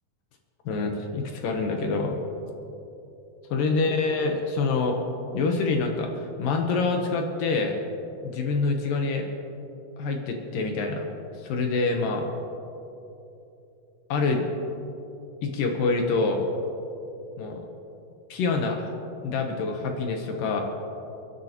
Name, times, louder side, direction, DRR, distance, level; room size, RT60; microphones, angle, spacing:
voice 1, 0.7-2.2 3.5-5.0 5.3-7.8 8.2-9.3 10.0-11.1 11.4-12.3 14.1-14.5 15.4-16.5 17.4-17.6 18.3-18.9 19.2-20.6, left 3 dB, 70° left, 2 dB, 2.5 m, -26 dB
30.0 x 10.5 x 2.9 m, 2.9 s
omnidirectional pair, 4.4 m